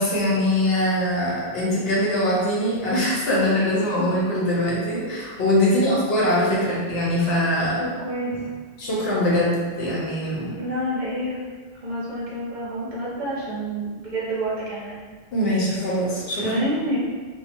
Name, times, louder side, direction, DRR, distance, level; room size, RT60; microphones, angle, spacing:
voice 1, 0.0-7.8 8.8-10.5 15.3-16.6, left 1 dB, 65° left, -6 dB, 0.9 m, -22 dB
voice 2, 7.8-8.5 10.2-11.4 11.8-15.0 16.4-17.0, right 1 dB, 45° right, -8 dB, 0.8 m, -28 dB
2.7 x 2.2 x 2.5 m, 1.5 s
omnidirectional pair, 1.2 m